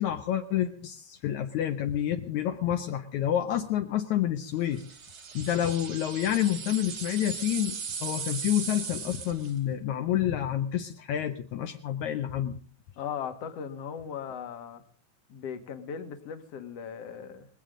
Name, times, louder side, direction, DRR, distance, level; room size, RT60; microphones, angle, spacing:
voice 1, 0.0-4.8 5.3-12.6, left 11 dB, 75° left, 5 dB, 2.2 m, -29 dB
sound 1, 4.7-9.6, right 6 dB, 50° right, 2.3 m, -38 dB
voice 2, 13.0-14.8 15.3-17.5, left 7 dB, 60° left, 8 dB, 2.4 m, -38 dB
20.5 x 17.5 x 3.8 m, 0.43 s
omnidirectional pair, 3.4 m